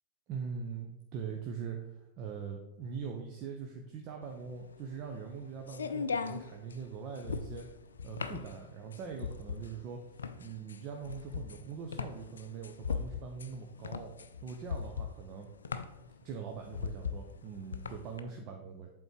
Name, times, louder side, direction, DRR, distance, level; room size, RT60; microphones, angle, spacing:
voice 1, 0.3-7.7 8.0-10.0 10.4-14.1 14.4-15.5 16.2-18.9, right 6 dB, 40° right, 2 dB, 0.7 m, -42 dB
sound 1, 4.3-18.2, left 6 dB, 70° left, 0.4 m, -39 dB
7.8 x 3.7 x 4.5 m, 0.90 s
figure-of-eight pair, 90°, 0 cm